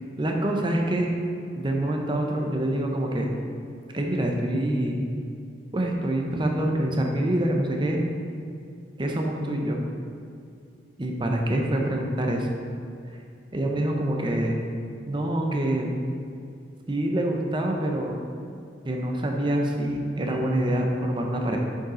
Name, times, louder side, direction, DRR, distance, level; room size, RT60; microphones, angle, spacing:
voice 1, 0.2-1.1 1.6-3.3 3.9-5.0 5.7-8.0 9.0-9.8 11.0-12.5 13.5-14.6 15.1-15.9 16.9-18.2 18.8-21.6, right 1 dB, 25° right, 1 dB, 0.7 m, -26 dB
7.2 x 5.4 x 3.8 m, 2.4 s
head